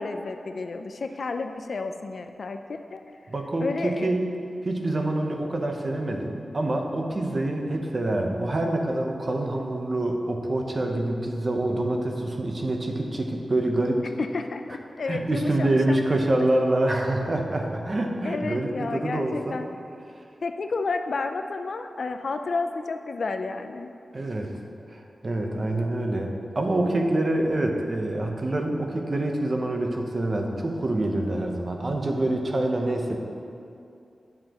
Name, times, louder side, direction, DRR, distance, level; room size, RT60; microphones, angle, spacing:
voice 1, 0.0-3.0 3.6-4.1 14.2-16.0 16.3-16.4 18.2-19.7 20.4-23.9, left 3 dB, 70° left, 7 dB, 0.4 m, -31 dB
voice 2, 3.3-4.3 4.6-14.0 15.1-19.6 24.1-24.5 24.9-33.2, right 1 dB, 40° right, 2 dB, 0.8 m, -26 dB
9.5 x 7.4 x 3.0 m, 2.6 s
wide cardioid pair, 105°, 0 cm